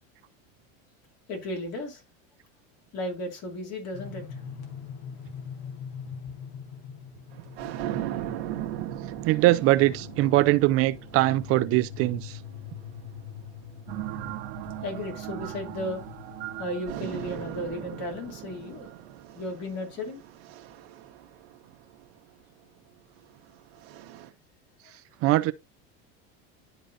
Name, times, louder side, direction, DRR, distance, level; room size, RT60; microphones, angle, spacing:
voice 1, 1.3-2.0 2.9-4.2 14.8-16.0 16.6-18.9 19.3-20.2, left 1 dB, 55° left, 2.8 m, -34 dB
sound 1, 3.9-16.8, left 7 dB, 75° left, 2.2 m, -43 dB
sound 2, 7.3-13.9 14.6-16.5 16.8-22.2 23.2-24.3, right 13 dB, 85° right, 1.1 m, -39 dB
voice 2, 9.2-12.4 25.2-25.5, right 18 dB, 50° right, 0.4 m, -22 dB
sound 3, 13.9-19.2, right 15 dB, 70° right, 1.1 m, -40 dB
11.5 x 3.9 x 2.6 m
supercardioid pair, 120°, 31 cm